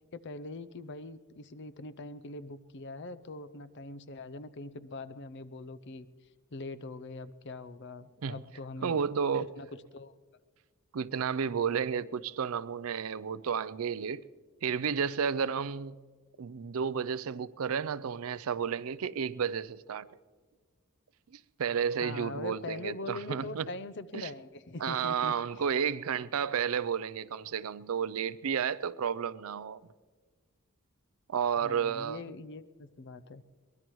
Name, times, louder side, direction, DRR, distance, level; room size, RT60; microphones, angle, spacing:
voice 1, 0.1-6.1 6.5-9.0 9.6-9.7 9.9-10.1 22.0-25.3 31.6-33.4, left 2 dB, 55° left, 0.6 m, -42 dB
voice 2, 8.8-9.5 10.9-14.2 14.6-16.0 16.4-20.1 21.3-23.7 24.1-24.3 24.8-29.9 31.3-32.2, right 7 dB, 70° right, 0.5 m, -32 dB
23.0 x 20.0 x 3.1 m
head